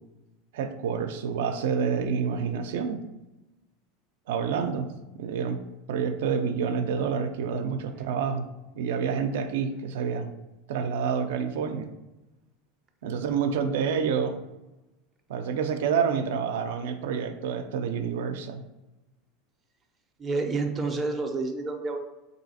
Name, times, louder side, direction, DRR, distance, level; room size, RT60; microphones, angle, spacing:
voice 1, 0.5-3.0 4.3-4.9 5.2-5.6 5.9-8.5 8.8-10.3 10.7-11.9 13.0-14.4 15.3-18.6, right 6 dB, 80° right, 7 dB, 0.4 m, -28 dB
voice 2, 20.2-22.0, right 3 dB, 15° right, 3 dB, 0.4 m, -29 dB
3.2 x 2.7 x 4.1 m, 1.0 s
supercardioid pair, 160°, 0 cm